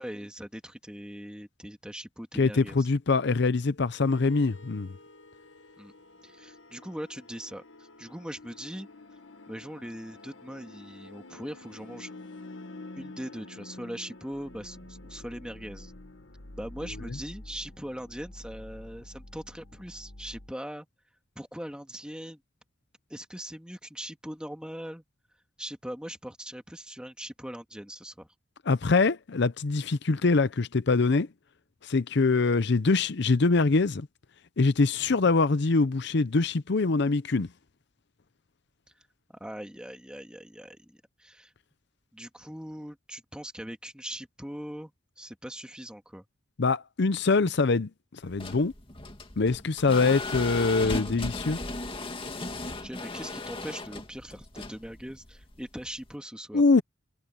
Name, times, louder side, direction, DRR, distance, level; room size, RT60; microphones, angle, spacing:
voice 1, 0.0-2.9 5.8-5.9 6.2-8.9 9.5-12.1 12.9-15.9 16.6-20.9 21.4-22.4 23.1-25.0 25.6-28.3 39.3-41.5 42.1-46.2 52.7-56.6, equal, 5° right, 2.0 m, -41 dB
voice 2, 2.4-4.9 28.7-31.3 31.8-34.1 34.6-37.5 46.6-47.9 48.2-48.7 49.4-51.6 56.5-56.8, left 3 dB, 65° left, 0.7 m, -24 dB
sound 1, 4.0-20.5, left 2 dB, 85° left, 1.8 m, -48 dB
sound 2, 48.2-56.1, left 2 dB, 30° left, 2.3 m, -37 dB
head